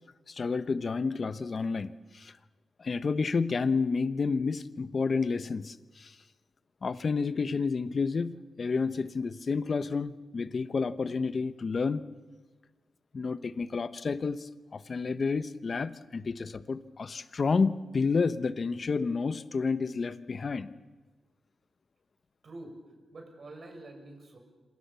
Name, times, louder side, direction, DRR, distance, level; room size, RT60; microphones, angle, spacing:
voice 1, 0.3-2.3 2.8-6.2 6.8-12.0 13.1-20.7, left 4 dB, 45° left, 13 dB, 1.1 m, -30 dB
voice 2, 22.4-22.8 23.1-24.4, right 2 dB, 45° right, 3 dB, 7.2 m, -46 dB
26.5 x 26.5 x 7.0 m, 1.3 s
cardioid pair, 95°, 0 cm